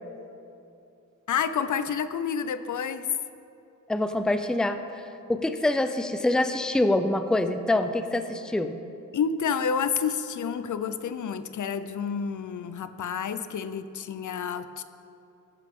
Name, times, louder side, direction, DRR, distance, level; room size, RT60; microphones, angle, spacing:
voice 1, 1.3-3.1 9.1-14.8, left 7 dB, 65° left, 12 dB, 0.6 m, -29 dB
voice 2, 3.9-8.7, left 1 dB, ahead, 9 dB, 0.5 m, -25 dB
17.0 x 10.5 x 3.7 m, 2.7 s
wide cardioid pair, 110°, 32 cm